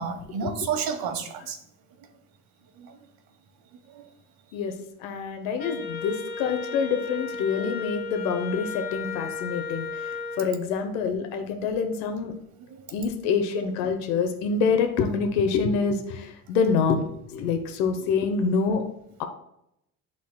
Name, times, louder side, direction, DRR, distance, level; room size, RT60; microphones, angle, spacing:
voice 1, 0.0-1.6 2.8-3.0 3.9-4.0 4.5-4.6 5.6-5.8 12.7-12.9, right 6 dB, 65° right, 5 dB, 1.4 m, -31 dB
voice 2, 5.0-12.3 12.9-18.8, left 5 dB, 90° left, 6 dB, 1.0 m, -26 dB
Wind instrument woodwind instrument, 5.6-10.5, left 4 dB, 25° left, 1.0 m, -34 dB
11.5 x 4.1 x 2.3 m, 0.78 s
supercardioid pair, 95°, 39 cm